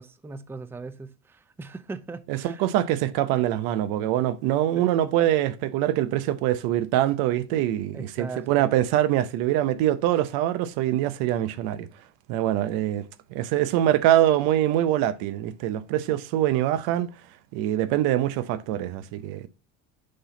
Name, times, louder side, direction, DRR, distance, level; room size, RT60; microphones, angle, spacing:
voice 1, 0.0-2.7 4.8-4.9 7.9-8.6, right 3 dB, 5° right, 0.4 m, -39 dB
voice 2, 2.3-11.9 12.3-13.1 13.3-17.1 17.5-19.5, right 13 dB, 75° right, 0.7 m, -24 dB
6.5 x 4.1 x 3.9 m
supercardioid pair, 100°, 37 cm